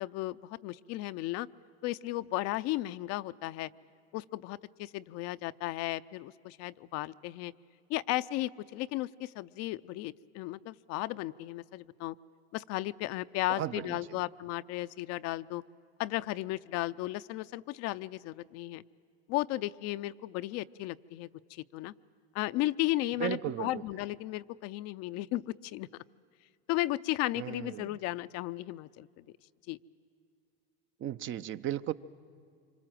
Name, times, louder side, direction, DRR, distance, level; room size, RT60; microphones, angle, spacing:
voice 1, 0.0-1.5 1.8-3.7 4.1-7.5 7.9-12.1 12.5-15.6 16.0-18.8 19.3-21.9 22.3-25.9 26.7-29.1 29.7-29.8, left 17 dB, 50° left, 14 dB, 0.5 m, -35 dB
voice 2, 13.6-14.0 23.2-23.8 27.4-28.0 31.0-31.9, right 11 dB, 40° right, 14 dB, 0.6 m, -35 dB
26.0 x 25.0 x 7.7 m, 2.2 s
hypercardioid pair, 95°, 32 cm